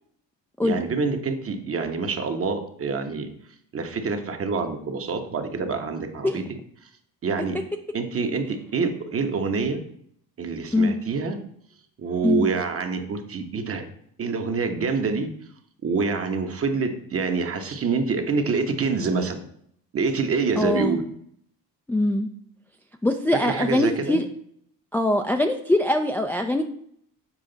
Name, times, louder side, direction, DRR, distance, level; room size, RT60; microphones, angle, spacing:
voice 1, 0.6-3.3 3.7-6.4 7.2-7.6 7.9-9.8 10.4-11.4 12.0-13.8 14.2-15.3 15.8-19.4 19.9-21.0 23.4-24.2, right 4 dB, 40° right, 5 dB, 1.1 m, -26 dB
voice 2, 20.6-21.0 21.9-22.3 23.0-24.3 24.9-26.6, left 1 dB, 5° left, 4 dB, 0.4 m, -22 dB
7.4 x 4.8 x 4.0 m, 0.68 s
cardioid pair, 100°, 36 cm